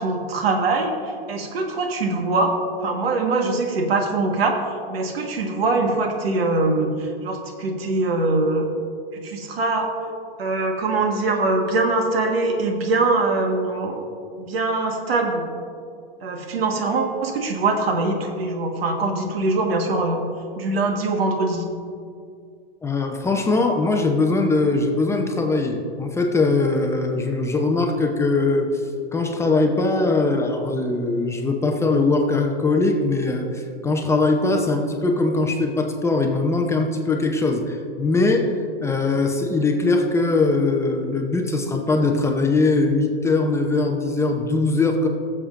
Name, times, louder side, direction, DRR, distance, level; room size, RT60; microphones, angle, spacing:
voice 1, 0.0-2.5 2.8-4.6 4.9-8.7 9.1-9.9 10.4-14.0 14.4-15.4 16.2-20.2 20.6-21.6, right 3 dB, 80° right, 3 dB, 1.5 m, -23 dB
voice 2, 22.8-28.8 29.1-38.5 38.8-45.1, left 3 dB, 10° left, 3 dB, 0.6 m, -21 dB
18.5 x 7.3 x 2.5 m, 2.4 s
hypercardioid pair, 125°, 30 cm